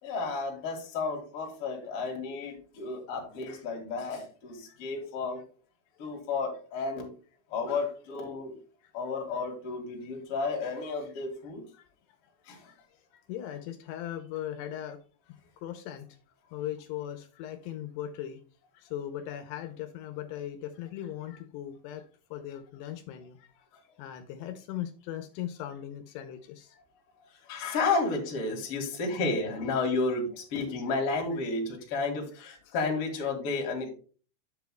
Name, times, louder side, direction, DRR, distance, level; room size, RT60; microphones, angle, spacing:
voice 1, 0.0-5.4 6.0-7.1 7.5-8.6 8.9-11.6 12.5-12.7 27.5-33.9, left 3 dB, 45° left, 1 dB, 2.4 m, -32 dB
voice 2, 13.1-15.0 15.3-16.1 16.5-18.4 18.7-23.5 24.0-26.8 31.5-31.6 32.7-32.8, left 11 dB, 80° left, 8 dB, 2.7 m, -39 dB
9.2 x 7.5 x 2.3 m, 0.37 s
omnidirectional pair, 4.9 m